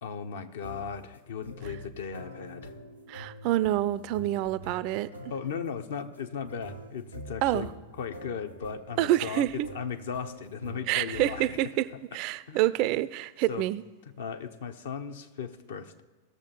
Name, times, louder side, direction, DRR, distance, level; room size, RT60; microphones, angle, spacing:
voice 1, 0.0-2.7 5.3-7.7 8.0-11.6 11.9-12.0 12.5-12.7 13.5-13.7 14.2-16.0, left 6 dB, 60° left, 0.7 m, -37 dB
sound 1, 0.6-11.8, equal, 90° left, 0.9 m, -46 dB
voice 2, 3.1-5.1 7.4-7.7 9.0-9.7 10.9-11.9 12.1-13.8, right 14 dB, 45° right, 0.3 m, -27 dB
17.5 x 6.8 x 2.9 m
figure-of-eight pair, 90°, 0 cm